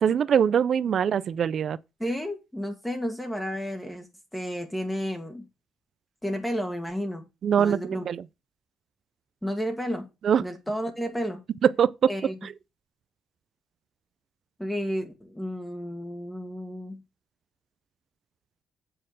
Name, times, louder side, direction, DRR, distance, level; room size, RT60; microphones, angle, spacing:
voice 1, 0.0-1.8 7.4-8.2 10.2-10.4 11.6-11.9 12.2-12.5, right 8 dB, 60° right, 0.5 m, -23 dB
voice 2, 2.0-4.1 4.3-5.5 6.2-7.2 7.6-8.0 9.4-10.1 10.4-11.4 12.1-12.3 14.6-17.0, equal, 5° left, 1.6 m, -32 dB
7.6 x 4.4 x 6.5 m
cardioid pair, 90°, 0 cm